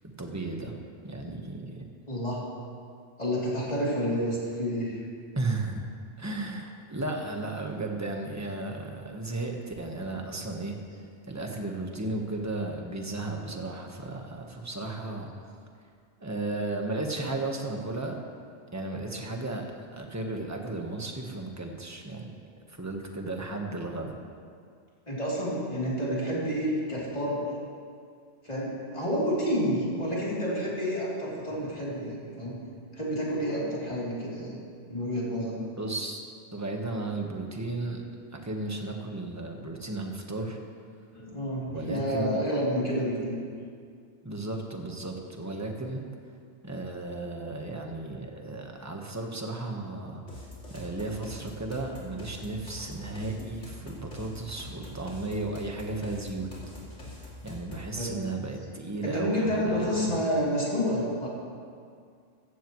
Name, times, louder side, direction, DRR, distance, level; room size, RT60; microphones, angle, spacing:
voice 1, 0.2-0.7 1.0-1.8 5.3-5.8 6.2-15.3 16.2-18.2 18.7-22.3 22.7-24.1 35.8-36.2 36.5-38.0 38.3-40.6 41.7-42.4 44.2-46.0 46.6-50.2 50.7-56.5 57.1-60.2, right 2 dB, 15° right, 2 dB, 1.2 m, -34 dB
voice 2, 2.1-2.5 3.2-5.0 25.1-27.5 28.4-32.6 32.9-34.6 34.9-35.6 41.1-43.4 58.0-58.2 59.0-61.3, equal, 35° left, -7 dB, 3.4 m, -29 dB
sound 1, 50.3-58.0, left 2 dB, 85° left, 3.2 m, -44 dB
15.5 x 15.0 x 3.2 m, 2.2 s
omnidirectional pair, 1.2 m